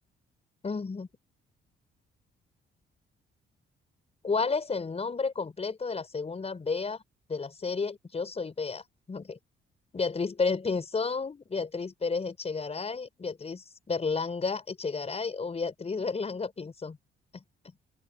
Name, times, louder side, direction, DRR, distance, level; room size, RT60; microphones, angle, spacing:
voice 1, 0.6-1.1 4.2-7.0 7.3-9.4 9.9-17.0 17.3-17.7, left 4 dB, 30° left, 5.6 m, -32 dB
open air
cardioid pair, 90°, 20 cm